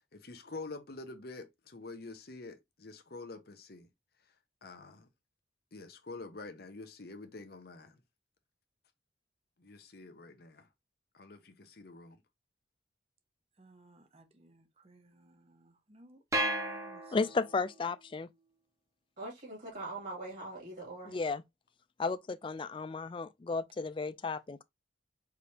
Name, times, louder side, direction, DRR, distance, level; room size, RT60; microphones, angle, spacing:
voice 1, 0.0-3.9 4.6-5.1 5.7-8.0 9.6-10.7 11.1-12.2, left 3 dB, 55° left, 0.9 m, -47 dB
voice 2, 13.6-17.1, right 1 dB, 35° right, 0.9 m, -59 dB
sound 1, 16.3-17.7, right 1 dB, 15° right, 1.2 m, -34 dB
voice 3, 17.1-18.3 21.1-21.4 22.0-24.6, left 4 dB, 25° left, 0.3 m, -34 dB
voice 4, 19.2-21.2, right 2 dB, 55° right, 2.6 m, -42 dB
4.9 x 3.4 x 2.8 m
head